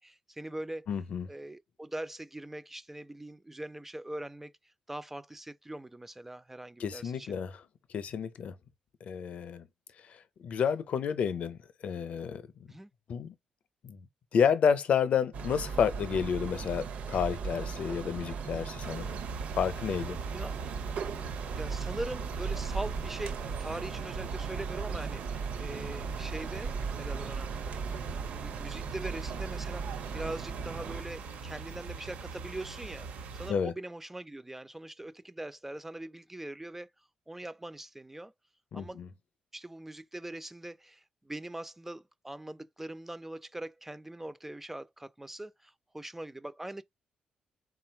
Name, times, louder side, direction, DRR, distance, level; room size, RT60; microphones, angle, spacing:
voice 1, 0.0-0.9 1.3-7.4 12.7-12.9 20.3-20.6 21.6-27.5 28.3-33.1 33.3-36.9 37.3-38.3 38.7-39.0 39.5-46.8, right 1 dB, 10° right, 0.3 m, -42 dB
voice 2, 0.9-1.3 6.8-7.5 7.9-8.5 9.0-9.7 10.4-12.4 13.1-13.3 13.8-14.1 14.3-19.1 19.5-20.2 33.5-33.7 38.7-39.1, left 7 dB, 55° left, 0.6 m, -30 dB
sound 1, 15.3-31.0, right 5 dB, 70° right, 0.7 m, -37 dB
sound 2, 18.8-33.5, right 5 dB, 85° right, 1.0 m, -42 dB
3.7 x 2.3 x 4.4 m
cardioid pair, 120°, 3 cm